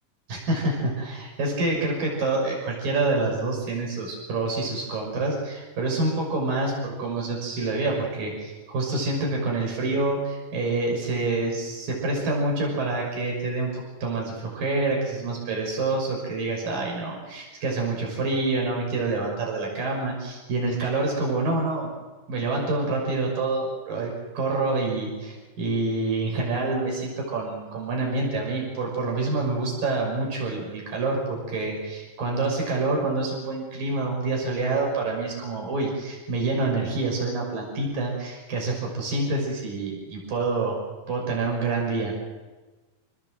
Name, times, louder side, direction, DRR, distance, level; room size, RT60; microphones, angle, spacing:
voice 1, 0.3-21.9 22.3-40.8 41.1-42.1, right 3 dB, 75° right, 0 dB, 7.8 m, -27 dB
27.5 x 19.0 x 7.9 m, 1.2 s
omnidirectional pair, 4.0 m